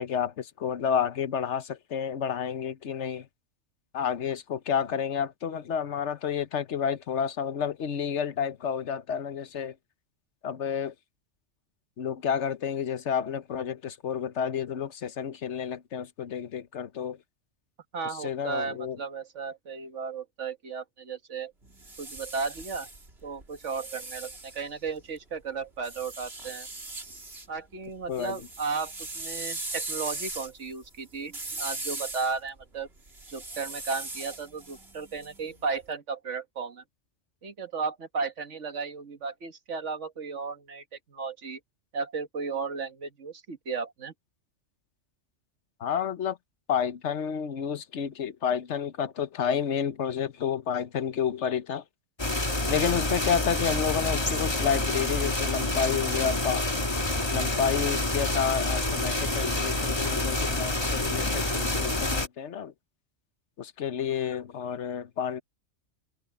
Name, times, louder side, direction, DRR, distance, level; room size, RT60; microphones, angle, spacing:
voice 1, 0.0-3.3 3.9-9.7 10.4-10.9 12.0-17.2 18.2-19.0 28.1-28.4 45.8-46.4 46.7-51.8 52.7-56.8 57.3-62.7 63.6-65.4, left 7 dB, 70° left, 1.2 m, -30 dB
voice 2, 17.9-21.5 22.0-22.9 23.2-26.7 27.5-32.9 33.3-36.8 37.4-41.6 41.9-44.1, right 5 dB, 75° right, 1.9 m, -34 dB
sound 1, 21.6-25.2 25.8-27.5 27.8-35.7, right 2 dB, 55° right, 3.3 m, -39 dB
sound 2, 52.2-62.3, left 2 dB, 20° left, 1.9 m, -28 dB
omnidirectional pair, 1.2 m